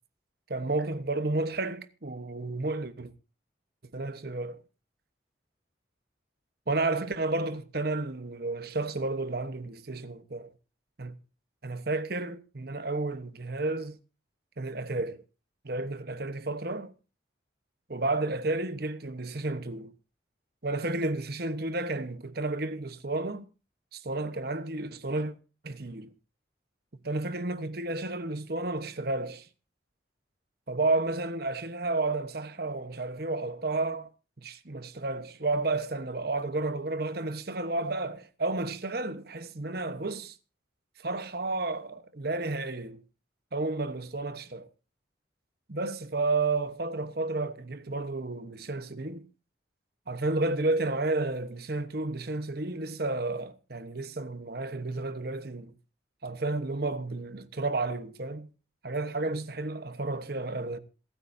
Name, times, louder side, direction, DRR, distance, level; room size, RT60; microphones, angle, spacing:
voice 1, 0.5-3.1 3.9-4.6 6.7-10.5 11.0-11.2 11.6-14.0 14.6-15.2 15.6-16.9 17.9-19.9 20.6-23.4 23.9-25.3 25.6-26.1 27.0-29.5 30.7-34.1 34.4-40.3 41.0-43.0 43.5-44.7 45.7-49.2 50.1-55.7 56.2-58.5 58.8-60.8, right 2 dB, 55° right, 1.1 m, -31 dB
27.0 x 9.3 x 2.7 m
head